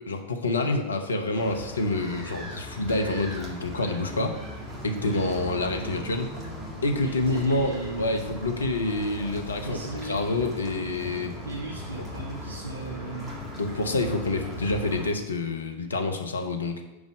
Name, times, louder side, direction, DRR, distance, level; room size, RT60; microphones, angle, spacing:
voice 1, 0.0-4.4 4.8-6.3 6.8-11.3 13.6-16.8, left 2 dB, 75° left, 5 dB, 0.8 m, -27 dB
sound 1, 1.3-15.1, equal, 15° right, 1.7 m, -38 dB
voice 2, 6.9-8.1 9.6-10.3 11.4-13.4 14.3-14.6, right 2 dB, 80° right, -7 dB, 1.8 m, -37 dB
5.3 x 4.8 x 6.1 m, 1.1 s
figure-of-eight pair, 90°, 0 cm